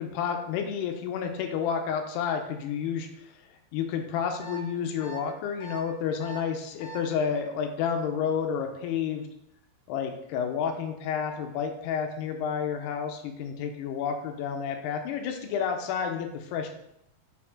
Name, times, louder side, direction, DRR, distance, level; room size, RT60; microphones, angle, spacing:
voice 1, 0.0-3.3 3.7-9.3 9.9-16.7, left 7 dB, 85° left, 5 dB, 2.7 m, -30 dB
sound 1, 4.4-4.6 5.0-5.2 5.6-5.8 6.2-6.4 6.8-7.0, right 4 dB, 65° left, 1.1 m, -41 dB
6.4 x 4.3 x 4.3 m, 0.76 s
omnidirectional pair, 4.7 m